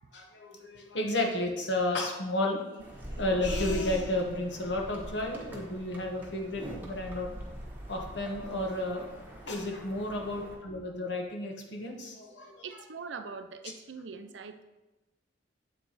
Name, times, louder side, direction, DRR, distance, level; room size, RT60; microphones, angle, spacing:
voice 1, 0.1-7.4 7.9-12.8, left 1 dB, 70° left, 1 dB, 1.2 m, -32 dB
sound 1, 2.8-10.5, equal, 10° right, 1.2 m, -42 dB
voice 2, 12.6-14.6, right 5 dB, 80° right, 9 dB, 0.5 m, -42 dB
7.8 x 4.7 x 4.0 m, 1.1 s
head